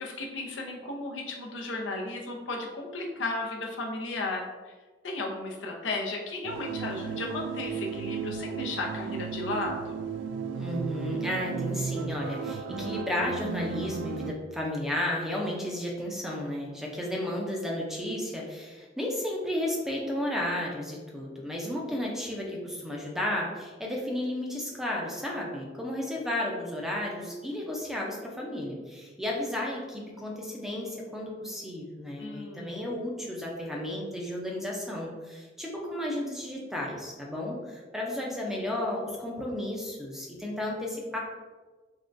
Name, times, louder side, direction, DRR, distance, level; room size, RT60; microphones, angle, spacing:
voice 1, 0.0-4.5 5.0-10.1 32.2-32.9, left 2 dB, 80° left, 0 dB, 0.6 m, -34 dB
sound 1, 6.4-14.3, right 6 dB, 80° right, 0.3 m, -34 dB
voice 2, 10.5-41.2, left 1 dB, ahead, -2 dB, 0.5 m, -33 dB
3.6 x 3.2 x 2.5 m, 1.3 s
head